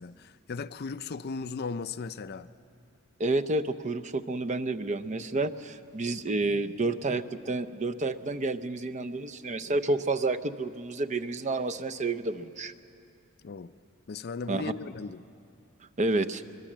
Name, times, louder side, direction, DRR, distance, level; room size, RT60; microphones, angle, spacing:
voice 1, 0.0-2.5 13.4-13.7 14.1-15.3, left 4 dB, 45° left, 0.4 m, -37 dB
voice 2, 3.2-12.7 14.5-14.7 16.0-16.4, right 2 dB, 35° right, 0.6 m, -30 dB
23.0 x 21.5 x 7.4 m
head